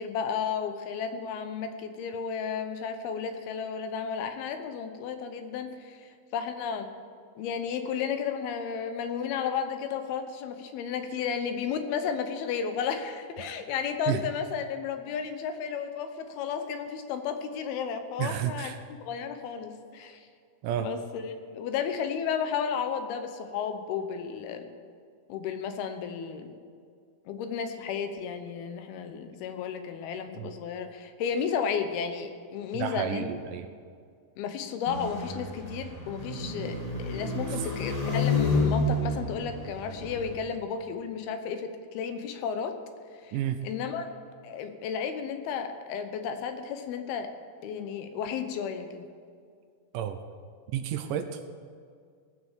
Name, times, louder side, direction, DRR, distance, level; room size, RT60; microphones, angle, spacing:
voice 1, 0.0-6.9 7.4-18.7 19.0-20.2 20.8-24.7 25.3-26.5 27.3-33.3 34.4-42.8 43.2-43.4 43.6-44.1 44.4-47.3 47.6-49.1, left 7 dB, 90° left, 7 dB, 2.9 m, -33 dB
voice 2, 18.2-18.8 20.6-20.9 30.4-30.5 32.7-33.7 37.6-37.7 43.3-43.6 49.9-50.2 50.7-51.4, right 10 dB, 80° right, 9 dB, 1.9 m, -31 dB
sound 1, 34.9-40.3, left 2 dB, 30° left, 0.6 m, -30 dB
18.5 x 6.4 x 7.3 m, 2.1 s
omnidirectional pair, 4.3 m